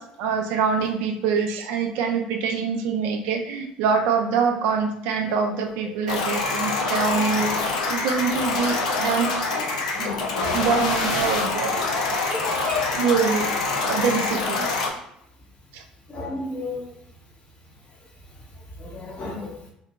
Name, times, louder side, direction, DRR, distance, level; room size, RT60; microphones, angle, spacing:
voice 1, 0.0-9.3 10.0-10.2 10.5-11.8 12.6-13.5 13.9-14.7 15.7-15.8, right 5 dB, 70° right, 4 dB, 0.3 m, -25 dB
sound 1, 6.1-14.9, left 3 dB, 90° left, 0.3 m, -25 dB
voice 2, 10.0-10.5 12.3-13.0 16.1-16.8 19.0-19.5, left 3 dB, 35° left, -1 dB, 0.8 m, -32 dB
2.5 x 2.2 x 2.2 m, 0.75 s
hypercardioid pair, 65°, 4 cm